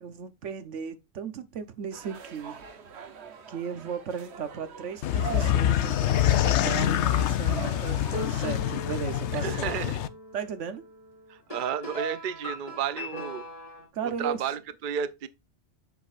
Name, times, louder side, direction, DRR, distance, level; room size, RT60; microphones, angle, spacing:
voice 1, 0.0-2.6 3.5-9.8 10.3-10.8 13.9-14.4, right 7 dB, 90° right, 1.2 m, -36 dB
sound 1, 1.9-8.5, right 6 dB, 65° right, 1.2 m, -43 dB
sound 2, 5.0-10.1, left 11 dB, 75° left, 0.9 m, -25 dB
sound 3, 7.8-13.9, left 1 dB, 30° left, 3.1 m, -39 dB
voice 2, 9.3-10.1 11.3-13.4 14.0-15.3, right 8 dB, 50° right, 0.7 m, -32 dB
8.0 x 6.2 x 2.5 m
omnidirectional pair, 1.2 m